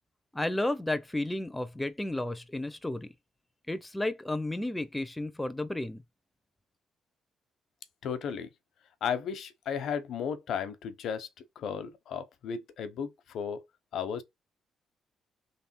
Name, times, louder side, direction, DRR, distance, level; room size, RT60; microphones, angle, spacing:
voice 1, 0.3-3.1 3.7-6.0, left 1 dB, 10° left, 0.6 m, -32 dB
voice 2, 8.0-8.5 9.0-11.3 11.6-13.6 13.9-14.2, left 7 dB, 70° left, 1.0 m, -34 dB
3.4 x 3.3 x 4.5 m
cardioid pair, 90°, 0 cm